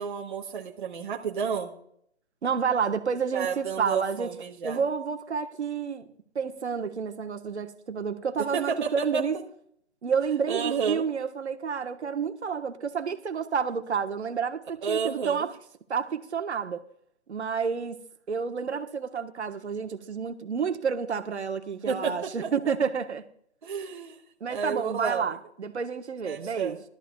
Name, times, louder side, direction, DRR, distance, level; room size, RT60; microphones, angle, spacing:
voice 1, 0.0-1.7 3.3-4.8 8.4-9.2 10.5-11.0 14.8-15.5 21.9-22.5 23.6-24.2 24.5-25.3 26.3-26.8, right 6 dB, 45° right, 1.2 m, -31 dB
voice 2, 2.4-4.3 4.6-6.1 6.3-9.3 10.0-15.5 15.9-16.8 17.3-18.0 18.3-23.2 24.4-26.8, right 6 dB, 80° right, 1.4 m, -30 dB
17.5 x 13.0 x 2.4 m
hypercardioid pair, 160°, 34 cm